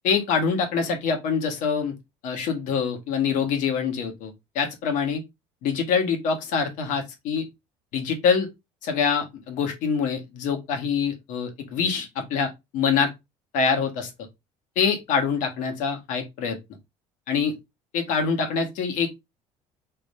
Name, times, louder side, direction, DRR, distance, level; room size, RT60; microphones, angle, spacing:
voice 1, 0.0-1.9 2.2-5.2 5.6-7.4 7.9-8.5 8.8-13.1 13.5-14.1 14.7-16.6 17.3-17.5 17.9-19.2, left 6 dB, 70° left, 1.4 m, -25 dB
3.4 x 3.0 x 4.1 m
cardioid pair, 125°, 14 cm